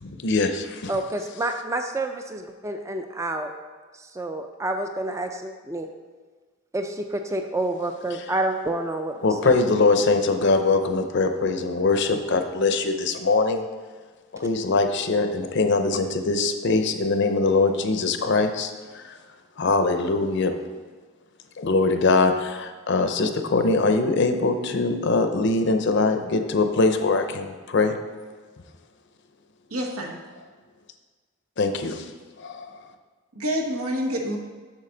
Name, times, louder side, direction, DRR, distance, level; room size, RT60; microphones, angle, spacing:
voice 1, 0.0-0.9 9.2-13.6 14.4-18.7 19.6-20.6 21.6-28.0 31.6-32.0 32.4-32.6, left 3 dB, 55° left, 7 dB, 0.6 m, -22 dB
voice 2, 0.9-3.5 4.2-5.9 6.7-9.1 9.4-9.6, right 2 dB, 15° right, 5 dB, 0.3 m, -28 dB
voice 3, 29.7-30.2 33.3-34.4, equal, 90° right, 1 dB, 1.2 m, -27 dB
7.5 x 6.3 x 3.8 m, 1.4 s
head